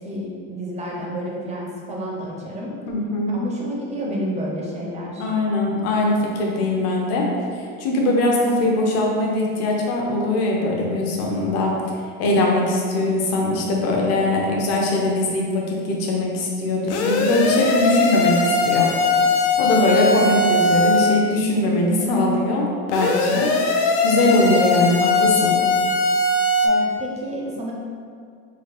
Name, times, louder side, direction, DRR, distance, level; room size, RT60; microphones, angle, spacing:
voice 1, 0.0-2.7 3.3-5.3 26.6-27.7, equal, 20° right, -3 dB, 0.4 m, -30 dB
voice 2, 2.9-3.4 5.2-7.3 7.5-11.7 12.2-18.9 19.3-22.6 22.9-25.6, left 2 dB, 45° left, -1 dB, 0.7 m, -21 dB
sound 1, 16.9-21.2 22.9-26.7, left 2 dB, 80° left, 0.6 m, -20 dB
3.9 x 2.4 x 3.2 m, 2.2 s
supercardioid pair, 140°, 35 cm